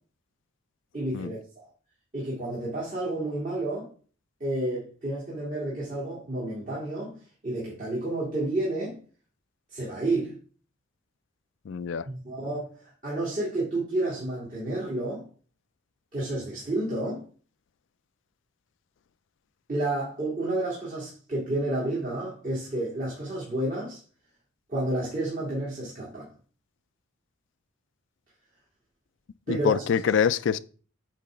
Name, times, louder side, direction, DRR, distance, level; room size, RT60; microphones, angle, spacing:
voice 1, 0.9-1.7 2.1-3.9 4.4-7.2 7.4-9.0 9.7-10.3 12.0-12.6 13.0-15.2 16.1-17.2 19.7-24.0 24.7-26.3 29.5-30.0, right 1 dB, 40° right, 2.3 m, -30 dB
voice 2, 11.7-12.0 29.5-30.6, left 7 dB, 60° left, 0.3 m, -25 dB
8.5 x 3.3 x 5.1 m
head